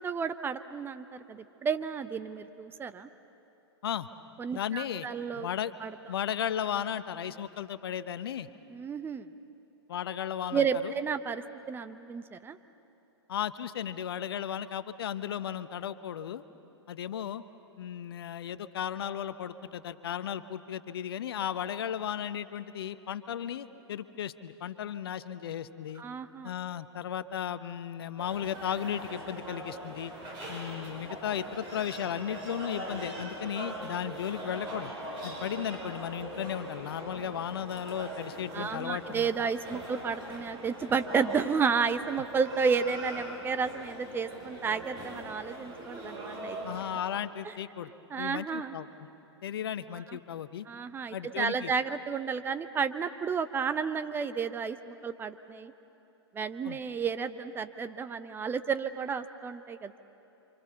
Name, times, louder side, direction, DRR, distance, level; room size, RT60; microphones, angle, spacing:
voice 1, 0.0-3.1 4.4-5.5 5.8-5.9 8.7-9.3 10.5-12.6 26.0-26.5 38.5-46.6 47.4-47.5 48.1-48.7 49.9-50.2 50.7-55.7 56.3-60.0, right 6 dB, 15° right, 11 dB, 0.7 m, -32 dB
voice 2, 4.5-5.1 5.4-5.7 6.1-8.5 9.9-10.9 13.3-16.4 16.9-17.4 17.8-26.0 26.4-30.1 30.5-34.9 35.2-39.5 46.6-47.9 48.2-49.1 49.4-50.7 51.1-51.7 56.6-56.8, left 9 dB, 60° left, 13 dB, 0.9 m, -35 dB
sound 1, 28.2-47.0, right 1 dB, 30° right, 6.6 m, -41 dB
29.5 x 25.5 x 6.9 m, 3.0 s
figure-of-eight pair, 110°, 14 cm